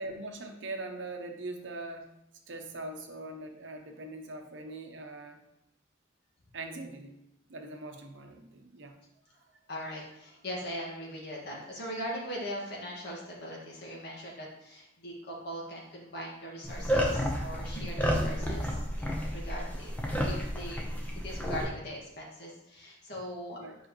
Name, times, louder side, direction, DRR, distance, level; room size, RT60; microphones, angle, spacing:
voice 1, 0.0-2.1 2.5-5.4 6.5-7.2 7.5-9.0 23.5-23.7, right 2 dB, 65° right, 4 dB, 0.8 m, -41 dB
voice 2, 9.7-20.9 21.2-23.6, equal, 55° left, -3 dB, 1.8 m, -40 dB
sound 1, 16.7-21.7, equal, 10° left, 0.8 m, -31 dB
7.5 x 5.0 x 3.0 m, 0.82 s
head